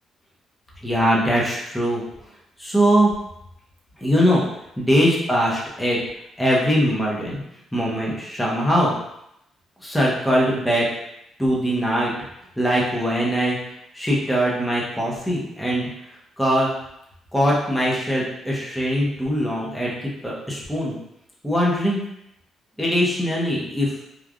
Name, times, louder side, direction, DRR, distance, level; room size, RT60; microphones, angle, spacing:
voice 1, 0.8-2.0 2.6-3.1 4.0-4.4 4.8-6.0 6.4-7.4 7.7-9.0 9.8-10.9 11.4-12.1 12.6-13.6 13.9-15.9 16.4-16.7 17.3-21.0 21.4-22.0 22.8-24.0, equal, 5° left, -5 dB, 0.8 m, -21 dB
3.1 x 2.5 x 2.4 m, 0.80 s
cardioid pair, 90°, 0 cm